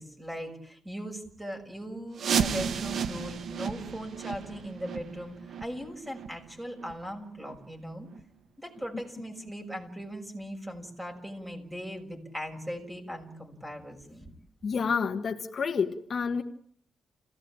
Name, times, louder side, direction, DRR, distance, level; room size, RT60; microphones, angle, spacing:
voice 1, 0.0-8.1 8.6-14.3, equal, 10° right, 3 dB, 6.4 m, -39 dB
sound 1, 2.2-7.7 8.1-8.2 8.7-8.8 9.5-9.6 10.1-10.2, right 7 dB, 65° right, 1.3 m, -34 dB
voice 2, 14.6-16.4, left 6 dB, 50° left, 5 dB, 1.6 m, -29 dB
29.0 x 17.0 x 8.9 m, 0.66 s
cardioid pair, 120°, 0 cm